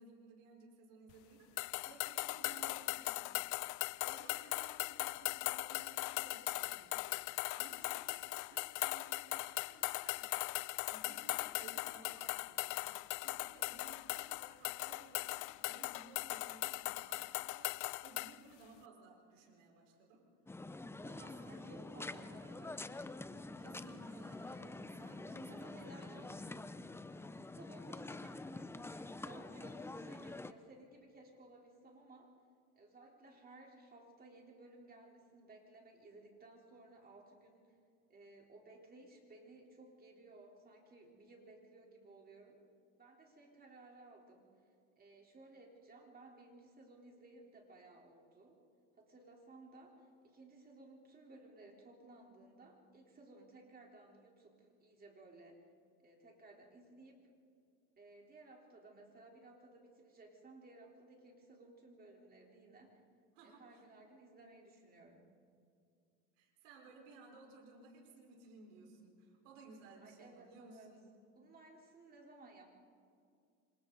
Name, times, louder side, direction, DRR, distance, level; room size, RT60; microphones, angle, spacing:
voice 1, 0.0-3.8 4.0-10.3 10.9-20.2 21.0-23.3 23.6-26.3 63.3-63.8 66.4-71.1, right 3 dB, 90° right, 0 dB, 4.7 m, -59 dB
sound 1, 1.6-18.4, left 21 dB, 55° left, 0.5 m, -39 dB
sound 2, 20.5-30.5, left 2 dB, 5° left, 0.6 m, -47 dB
voice 2, 21.4-22.6 25.3-26.8 27.2-32.3 32.7-37.8 38.1-42.6 43.0-44.5 45.0-48.6 49.0-55.6 56.0-57.3 58.0-63.0 63.4-65.3 70.0-70.9 71.4-72.7, right 2 dB, 25° right, 0 dB, 3.9 m, -59 dB
27.5 x 25.5 x 4.0 m, 2.4 s
supercardioid pair, 110°, 36 cm